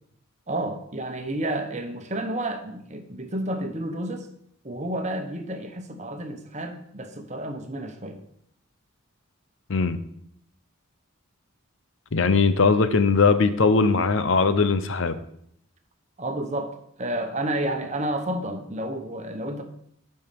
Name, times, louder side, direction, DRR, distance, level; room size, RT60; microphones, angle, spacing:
voice 1, 0.5-4.3 4.6-8.2 16.2-19.6, right 1 dB, 30° right, 6 dB, 1.1 m, -30 dB
voice 2, 9.7-10.0 12.1-15.2, left 4 dB, 65° left, 12 dB, 0.7 m, -20 dB
8.7 x 5.6 x 6.8 m, 0.70 s
head